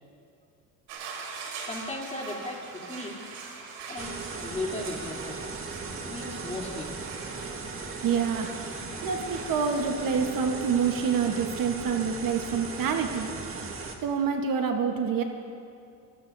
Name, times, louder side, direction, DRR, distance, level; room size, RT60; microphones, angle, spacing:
sound 1, 0.9-9.6, right 5 dB, 75° right, 3.0 m, -43 dB
voice 1, 1.6-3.2 3.9-5.4 6.0-7.0, left 2 dB, 15° left, -3 dB, 3.2 m, -36 dB
sound 2, 4.0-14.0, right 4 dB, 30° right, 1.8 m, -37 dB
voice 2, 8.0-8.5 9.0-13.3 14.0-15.2, right 6 dB, 55° right, 4 dB, 1.3 m, -27 dB
24.0 x 17.0 x 2.7 m, 2.6 s
supercardioid pair, 85°, 41 cm